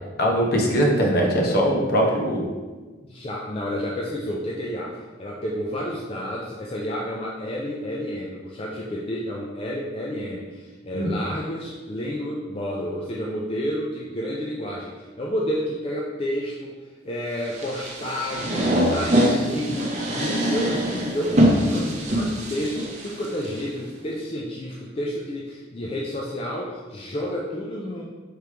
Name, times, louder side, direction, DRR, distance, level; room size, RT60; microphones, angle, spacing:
voice 1, 0.2-2.4 10.9-11.1, equal, 55° left, 0 dB, 0.8 m, -21 dB
voice 2, 3.0-28.0, equal, 30° left, -3 dB, 0.4 m, -30 dB
sound 1, 17.5-23.6, equal, 40° right, 0.7 m, -23 dB
5.0 x 3.1 x 3.4 m, 1.3 s
head